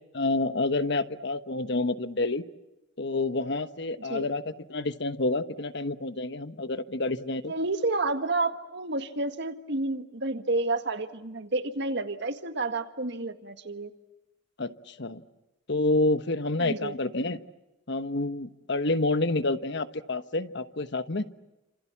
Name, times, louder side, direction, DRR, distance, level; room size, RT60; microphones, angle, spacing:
voice 1, 0.1-2.4 3.0-7.5 14.6-15.2 15.7-17.4 17.9-21.3, left 2 dB, 60° left, 11 dB, 1.2 m, -28 dB
voice 2, 7.5-13.9 16.6-16.9, right 2 dB, 60° right, 8 dB, 1.8 m, -30 dB
30.0 x 27.0 x 7.3 m, 1.0 s
head